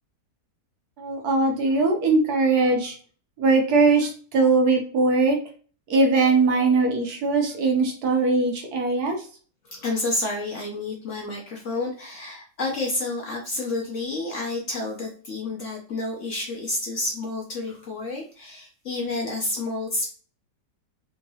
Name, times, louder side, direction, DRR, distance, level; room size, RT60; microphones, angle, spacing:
voice 1, 1.0-3.0 3.4-5.4 5.9-9.3, right 3 dB, 65° right, 2 dB, 1.2 m, -21 dB
voice 2, 9.7-20.1, left 2 dB, 55° left, 0 dB, 0.9 m, -30 dB
3.5 x 2.9 x 2.7 m, 0.41 s
omnidirectional pair, 1.9 m